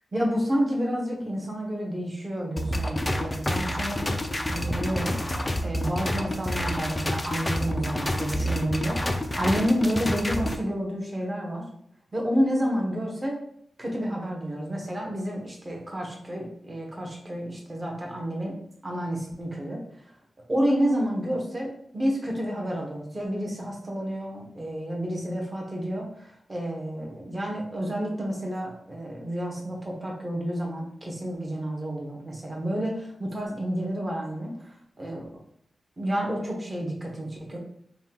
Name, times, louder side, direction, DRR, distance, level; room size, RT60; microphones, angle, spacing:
voice 1, 0.1-5.2 5.6-11.7 12.1-13.4 13.8-18.6 18.8-20.1 20.5-35.2 36.0-37.6, equal, 20° right, -1 dB, 0.9 m, -30 dB
sound 1, 2.6-10.6, equal, 15° left, 0.3 m, -28 dB
5.5 x 2.3 x 2.8 m, 0.69 s
wide cardioid pair, 145°, 0 cm